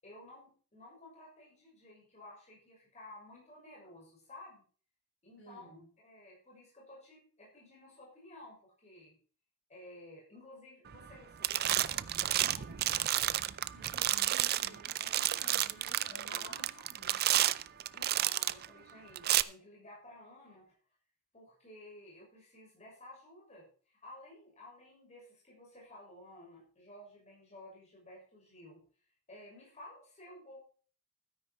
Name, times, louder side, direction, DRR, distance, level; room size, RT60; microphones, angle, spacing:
voice 1, 0.0-4.6 5.2-9.2 9.7-13.4 16.3-16.9 17.9-20.7 21.3-28.8 29.3-30.6, left 1 dB, 30° left, -4 dB, 6.5 m, -54 dB
voice 2, 5.4-5.8 13.7-17.2, right 1 dB, 55° left, -2 dB, 6.2 m, -54 dB
sound 1, 10.9-11.2 11.4-18.7 19.2-19.4, right 13 dB, 45° right, 0.5 m, -31 dB
13.0 x 10.0 x 4.5 m, 0.42 s
head